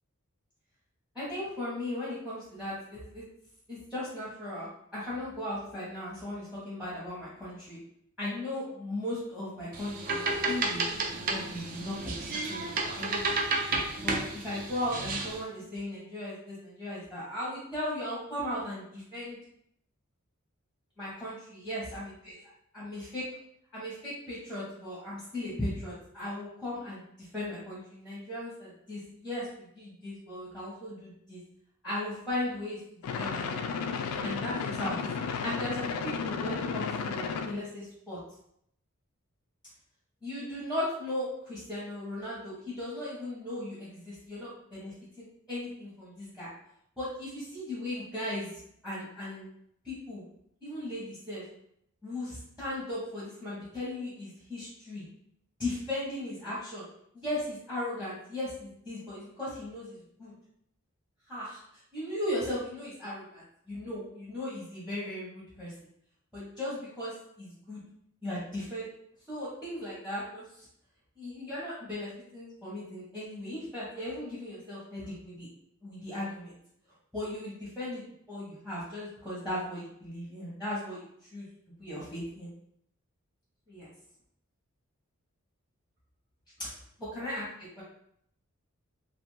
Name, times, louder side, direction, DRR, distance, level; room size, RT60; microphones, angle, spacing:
voice 1, 1.1-3.2 3.7-7.8 8.2-13.4 14.0-19.4 21.0-22.3 22.7-23.2 23.7-31.4 31.8-32.8 33.1-33.7 34.2-38.2 40.2-46.5 47.0-48.5 48.8-49.5 49.8-50.2 50.6-51.4 52.0-55.0 55.6-56.8 57.1-60.3 61.3-61.6 61.9-65.7 66.3-67.8 68.2-68.9 69.3-70.4 71.2-75.5 75.8-76.6 77.1-78.0 78.3-81.0 81.3-81.5 81.8-82.5 83.7-83.9 86.6-86.7 87.1-87.4 87.8-87.9, left 1 dB, 5° right, -8 dB, 0.8 m, -37 dB
sound 1, 9.7-15.4, right 3 dB, 40° right, 0.3 m, -32 dB
sound 2, 33.0-37.6, left 5 dB, 85° left, 0.3 m, -33 dB
2.4 x 2.4 x 3.0 m, 0.72 s
head